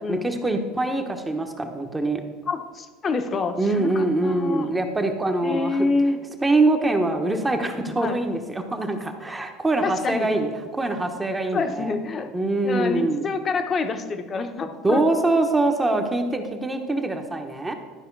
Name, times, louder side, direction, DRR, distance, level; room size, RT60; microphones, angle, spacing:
voice 1, 0.0-2.2 3.6-5.9 6.4-11.9 12.3-13.2 14.8-17.7, right 2 dB, 15° right, 5 dB, 1.0 m, -24 dB
voice 2, 2.5-4.7 5.4-6.2 8.0-8.2 9.8-10.3 11.5-12.3 12.6-15.0, left 4 dB, 30° left, 7 dB, 0.9 m, -27 dB
12.0 x 4.9 x 4.6 m, 1.4 s
supercardioid pair, 115°, 0 cm